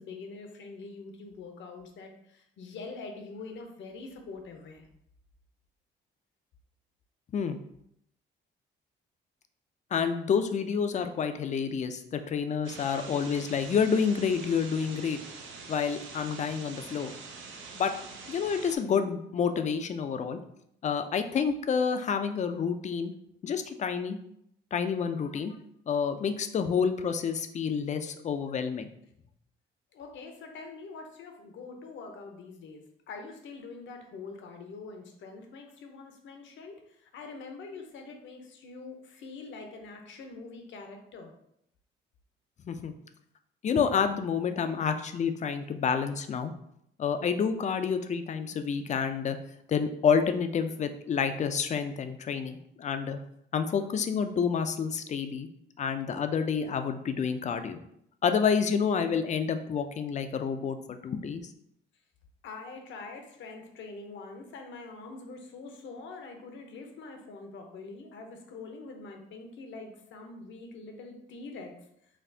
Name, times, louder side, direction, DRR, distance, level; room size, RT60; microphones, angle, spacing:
voice 1, 0.0-4.9 29.9-41.3 62.4-71.7, left 3 dB, 70° left, 4 dB, 0.7 m, -44 dB
voice 2, 9.9-15.2 15.7-17.1 17.7-17.9 18.3-20.4 20.8-23.1 23.4-24.2 24.7-25.6 25.9-28.9 42.6-42.9 43.6-46.5 47.0-49.4 49.7-53.2 53.5-55.5 55.8-57.8 58.2-61.4, left 6 dB, 35° left, 8 dB, 0.4 m, -29 dB
sound 1, 12.6-18.8, right 4 dB, 75° right, 0.6 m, -45 dB
4.2 x 2.3 x 2.7 m, 0.74 s
cardioid pair, 90°, 20 cm